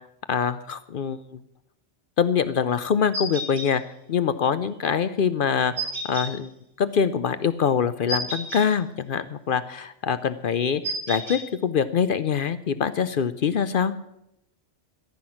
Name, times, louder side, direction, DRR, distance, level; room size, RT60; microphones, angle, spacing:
voice 1, 0.3-1.4 2.2-3.8 4.1-6.5 6.8-10.8 11.1-13.9, left 7 dB, 55° left, 13 dB, 0.7 m, -24 dB
sound 1, 3.1-3.7 5.8-6.3 8.1-8.6 10.8-11.4, right 2 dB, 85° right, 4.9 m, -30 dB
14.5 x 6.0 x 9.8 m, 0.81 s
omnidirectional pair, 1.2 m